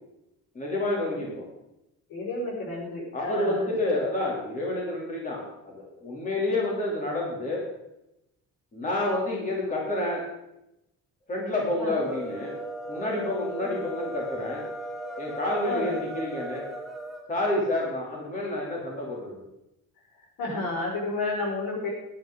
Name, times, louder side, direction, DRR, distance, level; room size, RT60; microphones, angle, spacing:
voice 1, 0.5-1.4 3.1-7.7 8.7-10.3 11.3-12.5 12.9-14.7 15.2-16.7 17.3-19.4, left 1 dB, 25° left, -3 dB, 3.2 m, -29 dB
voice 2, 2.1-3.7 11.8-11.9 13.6-13.7 15.7-15.9 20.4-21.9, left 2 dB, 85° left, -2 dB, 5.9 m, -31 dB
sound 1, 11.9-17.3, right 1 dB, ahead, 1.6 m, -37 dB
16.5 x 11.0 x 3.9 m, 0.88 s
cardioid pair, 175°, 32 cm